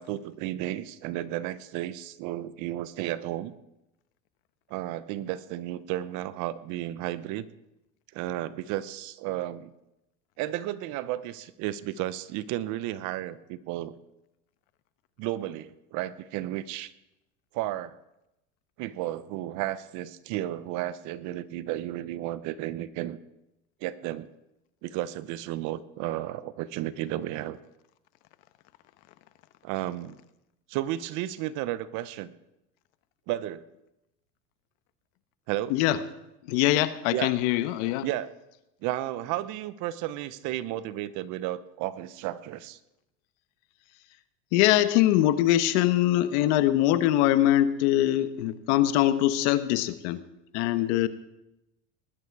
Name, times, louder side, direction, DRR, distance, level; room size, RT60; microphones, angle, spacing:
voice 1, 0.0-3.6 4.7-7.5 8.1-9.7 10.4-13.9 15.2-16.9 17.5-18.0 18.8-23.2 23.8-24.3 24.8-27.6 29.6-30.2 30.7-32.3 33.3-33.6 35.5-35.7 37.1-37.3 38.0-38.3 38.8-42.8, right 14 dB, 55° right, 15 dB, 0.9 m, -33 dB
voice 2, 36.5-38.0 44.5-50.2 50.5-51.1, left 14 dB, 65° left, 12 dB, 1.2 m, -23 dB
19.5 x 11.0 x 4.8 m, 0.90 s
supercardioid pair, 125°, 37 cm